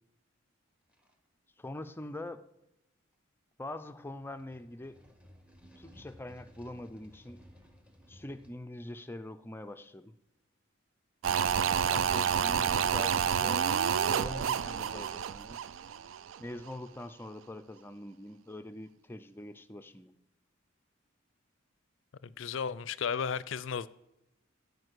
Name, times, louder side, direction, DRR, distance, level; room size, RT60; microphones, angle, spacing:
sound 1, 0.9-1.1 1.9-2.1 4.2-8.5, equal, 5° right, 1.3 m, -57 dB
voice 1, 1.6-2.4 3.6-5.0 5.8-7.4 8.1-10.1 11.5-13.7 14.1-15.6 16.4-20.2, left 1 dB, 10° left, 0.5 m, -44 dB
sound 2, 11.2-16.4 16.7-16.8, right 7 dB, 75° right, 0.4 m, -29 dB
voice 2, 22.2-23.9, left 6 dB, 70° left, 0.4 m, -34 dB
12.5 x 5.2 x 8.1 m
head